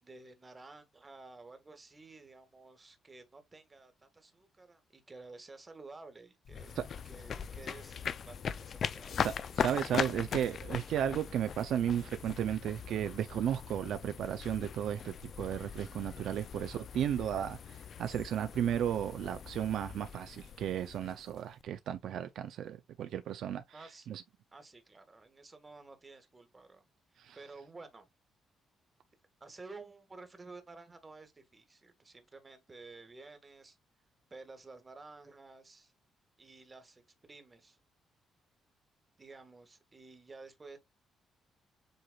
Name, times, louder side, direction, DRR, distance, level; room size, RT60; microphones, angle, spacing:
voice 1, 0.0-6.8 7.0-9.1 23.7-24.1 24.5-26.8 27.1-28.1 29.4-33.8 34.3-35.9 36.4-37.8 39.2-40.8, right 3 dB, 25° right, 1.5 m, -52 dB
sound 1, 6.5-21.6, left 7 dB, 55° left, 0.4 m, -40 dB
voice 2, 9.2-23.6 24.1-24.2 27.2-27.4, right 10 dB, 75° right, 0.4 m, -34 dB
7.8 x 2.9 x 2.3 m
cardioid pair, 90°, 0 cm